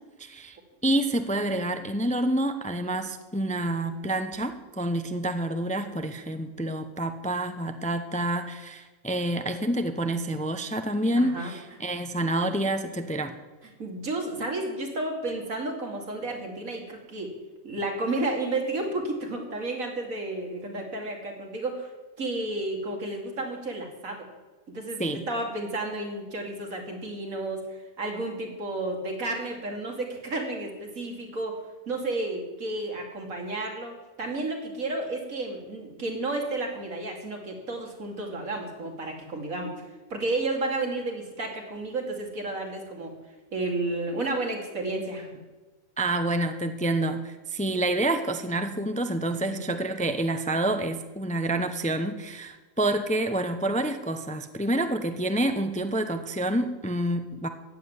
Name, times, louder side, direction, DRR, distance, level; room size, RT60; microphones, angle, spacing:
voice 1, 0.2-0.6 0.8-13.3 25.0-25.3 46.0-57.5, right 1 dB, 10° left, 8 dB, 0.6 m, -28 dB
voice 2, 11.2-11.5 13.8-17.3 17.6-21.9 22.2-24.3 24.7-27.7 28.0-31.6 31.9-39.7 40.1-43.1 43.5-45.3 49.6-49.7, right 2 dB, 85° right, 2 dB, 2.9 m, -32 dB
14.5 x 7.5 x 9.6 m, 1.2 s
omnidirectional pair, 1.4 m